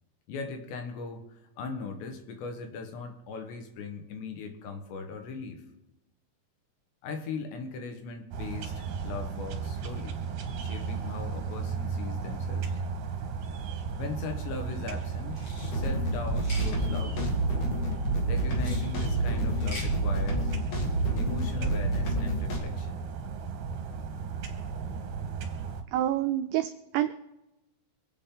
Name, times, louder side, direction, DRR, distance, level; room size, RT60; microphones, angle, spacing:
voice 1, 0.3-5.6 7.0-10.2 10.6-12.8 14.0-17.3 18.3-20.5 21.2-23.0, left 4 dB, 70° left, 5 dB, 3.3 m, -39 dB
sound 1, 8.3-25.8, right 5 dB, 65° right, 2.2 m, -35 dB
sound 2, 15.3-15.7 16.3-16.7 18.5-18.9 19.5-19.9, left 1 dB, 35° left, 2.7 m, -42 dB
sound 3, 15.6-22.6, right 1 dB, 50° left, 2.9 m, -29 dB
voice 2, 25.9-27.1, right 12 dB, 90° right, 8 dB, 2.4 m, -28 dB
26.0 x 8.8 x 3.8 m, 0.95 s
omnidirectional pair, 5.5 m